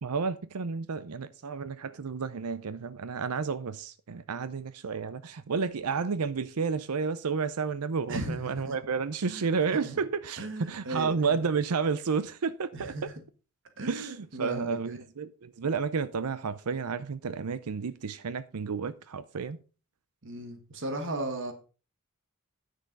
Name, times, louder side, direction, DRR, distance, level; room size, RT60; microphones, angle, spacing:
voice 1, 0.0-13.1 13.8-19.6, right 5 dB, 80° right, 0.6 m, -31 dB
voice 2, 8.1-8.7 9.3-10.0 10.4-11.4 12.7-13.1 13.8-15.0 20.2-21.5, right 2 dB, 60° right, 1.6 m, -36 dB
10.0 x 6.5 x 5.3 m
head